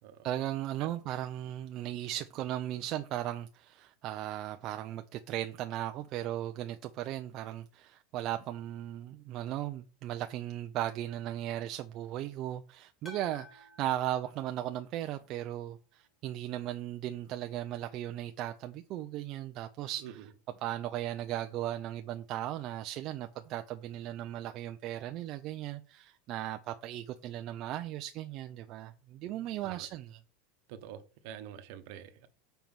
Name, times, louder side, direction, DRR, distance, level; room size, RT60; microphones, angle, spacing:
voice 1, 0.2-20.2 20.6-30.2, right 13 dB, 30° right, 0.4 m, -37 dB
sound 1, 13.0-15.3, equal, 10° left, 1.5 m, -53 dB
voice 2, 30.7-32.3, right 10 dB, 50° right, 1.0 m, -46 dB
7.1 x 4.5 x 5.6 m
supercardioid pair, 180°, 0 cm